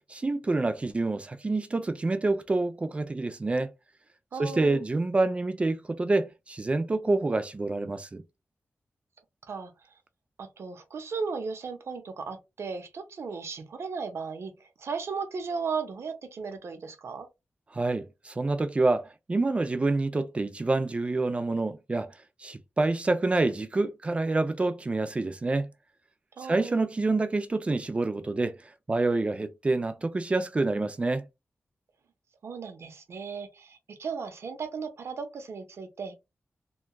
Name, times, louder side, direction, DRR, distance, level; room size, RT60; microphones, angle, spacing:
voice 1, 0.1-3.7 4.4-8.2 17.7-22.1 22.4-25.7 26.4-28.6 28.9-31.3, right 2 dB, 25° right, 0.3 m, -27 dB
voice 2, 4.3-4.8 9.5-9.7 10.4-17.3 26.4-26.8 32.4-36.1, right 5 dB, 75° right, 0.6 m, -36 dB
2.8 x 2.2 x 2.2 m
wide cardioid pair, 125°, 5 cm